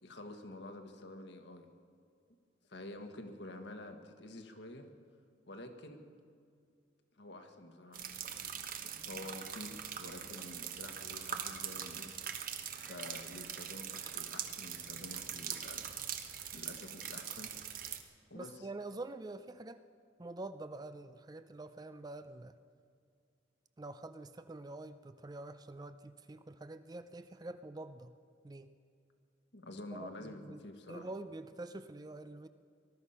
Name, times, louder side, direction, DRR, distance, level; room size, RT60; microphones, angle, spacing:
voice 1, 0.0-1.7 2.7-4.9 5.5-6.0 7.2-8.1 9.0-12.1 12.8-16.0 16.5-17.5 18.3-18.7 29.5-31.1, left 1 dB, 65° left, 5 dB, 1.5 m, -49 dB
sound 1, 7.9-18.0, right 8 dB, 45° right, 1.0 m, -42 dB
voice 2, 18.3-19.8 20.2-22.6 23.8-28.1 28.4-28.7 29.9-30.6 30.9-32.5, right 2 dB, 20° right, 11 dB, 0.4 m, -46 dB
19.5 x 12.5 x 5.7 m, 2.3 s
head